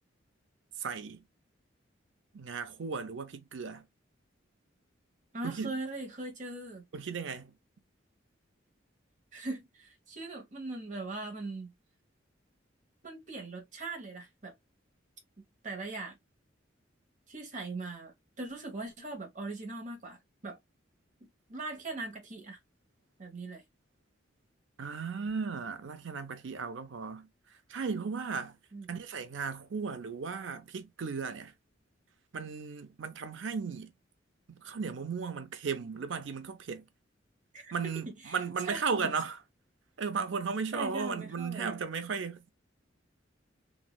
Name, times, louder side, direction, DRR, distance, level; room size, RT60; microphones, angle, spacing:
voice 1, 0.8-1.2 2.3-3.8 5.4-5.8 6.9-7.5 24.8-27.3 27.7-28.6 28.9-31.5 32.3-33.9 34.5-36.8 37.7-39.4 40.0-42.4, right 5 dB, 70° right, 0.6 m, -35 dB
voice 2, 5.3-6.9 9.3-11.7 13.0-14.5 15.4-16.2 17.3-20.2 20.4-20.6 21.5-22.6 23.2-23.6 28.7-28.9 37.5-37.7 38.0-38.4 38.6-39.1 40.7-41.8, right 2 dB, 40° right, 1.1 m, -40 dB
3.1 x 2.7 x 2.3 m
head